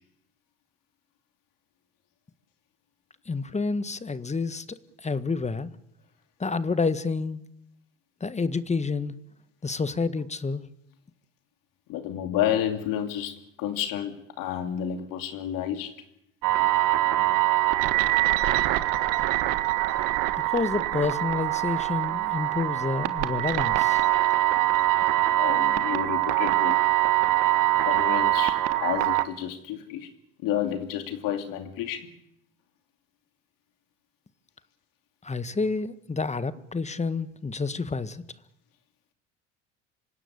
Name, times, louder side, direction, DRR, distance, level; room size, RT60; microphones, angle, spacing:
voice 1, 3.3-5.7 6.4-7.4 8.2-9.1 9.6-10.6 20.5-24.0 35.2-38.2, left 4 dB, 20° left, 14 dB, 1.6 m, -29 dB
voice 2, 11.9-15.9 25.4-26.8 27.8-30.1 30.4-32.2, left 10 dB, 60° left, 7 dB, 2.8 m, -30 dB
sound 1, 16.4-29.2, right 14 dB, 60° right, 1.6 m, -23 dB
26.0 x 17.0 x 9.9 m, 0.80 s
hypercardioid pair, 70°, 37 cm